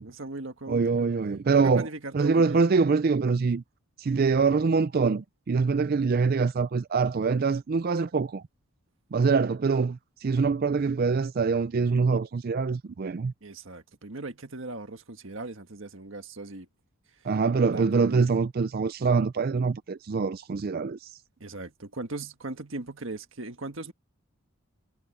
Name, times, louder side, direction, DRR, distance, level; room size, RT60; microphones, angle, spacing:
voice 1, 0.0-1.1 1.6-2.6 10.2-10.5 13.4-16.7 17.2-17.3 17.7-18.3 21.4-23.9, right 2 dB, 65° right, 1.6 m, -38 dB
voice 2, 0.7-1.9 2.1-3.6 4.0-8.4 9.1-13.3 17.2-21.1, right 4 dB, 45° right, 0.4 m, -24 dB
head